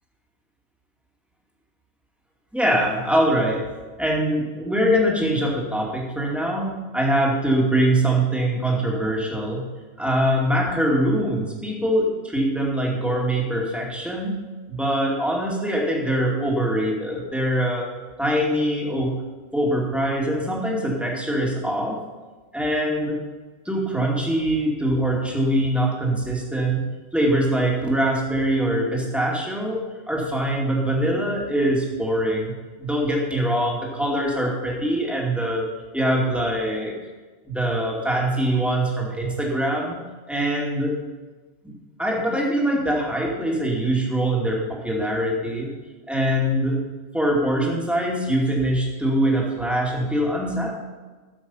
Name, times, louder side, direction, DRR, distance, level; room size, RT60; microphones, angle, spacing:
voice 1, 2.5-3.7 4.0-9.7 10.0-14.4 14.7-17.9 18.2-19.2 19.5-22.0 22.5-23.2 23.6-26.8 27.1-32.5 32.8-35.7 35.9-36.9 37.5-40.0 40.3-40.9 41.6-41.7 42.0-45.7 46.1-46.8 47.1-50.7, right 1 dB, ahead, -2 dB, 2.3 m, -23 dB
13.0 x 7.4 x 5.6 m, 1.3 s
omnidirectional pair, 1.4 m